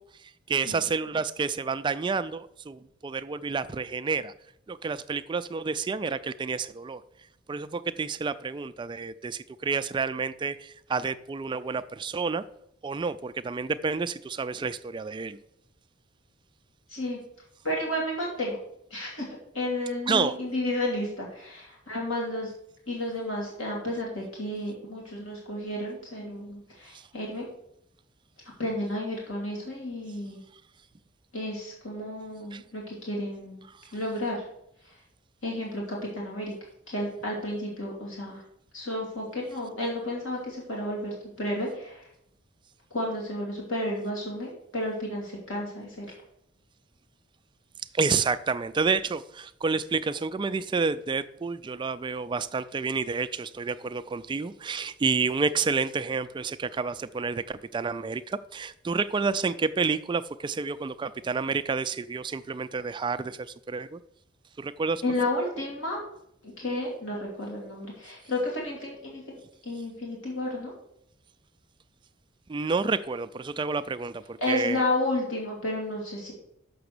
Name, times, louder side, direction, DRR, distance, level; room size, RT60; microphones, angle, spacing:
voice 1, 0.0-4.3 4.7-7.0 7.5-12.4 12.8-15.4 20.1-20.3 26.9-27.1 32.5-32.6 33.7-33.8 47.9-64.0 64.6-65.0 72.5-74.8, right 4 dB, 25° right, 13 dB, 0.3 m, -29 dB
voice 2, 17.6-18.6 18.9-19.3 19.5-22.5 22.9-27.5 28.6-30.4 31.3-33.6 33.9-34.5 34.8-35.0 35.4-36.5 36.9-38.4 38.7-42.1 42.9-46.1 65.0-66.0 66.4-70.7 74.4-76.3, left 1 dB, 90° left, -2 dB, 2.5 m, -32 dB
6.9 x 6.0 x 6.6 m, 0.75 s
head